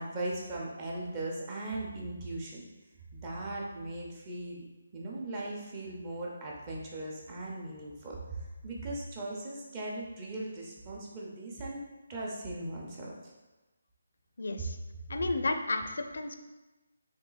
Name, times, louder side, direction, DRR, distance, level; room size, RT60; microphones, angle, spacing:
voice 1, 0.0-2.7 3.1-4.6 4.9-11.8 12.1-13.3 14.6-14.7, right 2 dB, 20° right, -3 dB, 0.8 m, -38 dB
voice 2, 14.4-14.8 15.1-16.4, left 2 dB, 75° left, 7 dB, 0.4 m, -32 dB
3.6 x 3.1 x 4.0 m, 1.1 s
hypercardioid pair, 165°, 0 cm